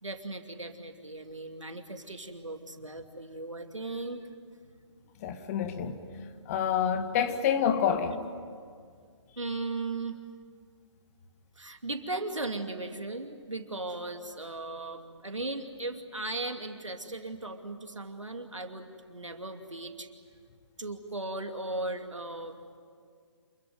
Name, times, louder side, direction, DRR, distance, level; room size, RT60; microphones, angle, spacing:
voice 1, 0.0-4.3 9.4-10.2 11.6-20.1 20.8-22.6, right 2 dB, 85° right, 2.7 m, -37 dB
voice 2, 5.2-6.0 6.5-8.2, left 8 dB, 30° left, 1.8 m, -27 dB
28.0 x 22.0 x 9.3 m
figure-of-eight pair, 140°, 15 cm